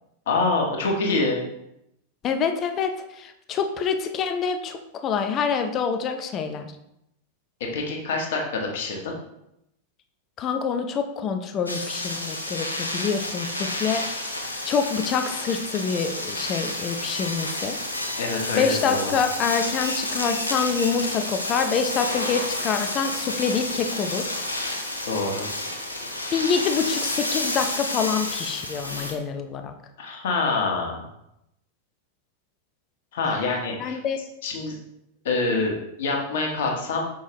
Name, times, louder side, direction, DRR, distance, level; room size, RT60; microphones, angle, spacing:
voice 1, 0.3-1.4 7.7-9.1 18.2-19.1 25.0-25.5 30.0-31.0 33.1-34.0 34.4-34.8 35.2-37.1, left 3 dB, 55° left, 0 dB, 1.5 m, -26 dB
voice 2, 2.2-6.7 10.4-14.4 14.6-17.8 18.6-24.3 26.3-29.7 33.8-34.2, left 6 dB, 30° left, 7 dB, 0.6 m, -26 dB
sound 1, 11.7-29.1, left 1 dB, 85° left, 0.9 m, -30 dB
6.3 x 5.4 x 3.0 m, 0.82 s
figure-of-eight pair, 90°, 0 cm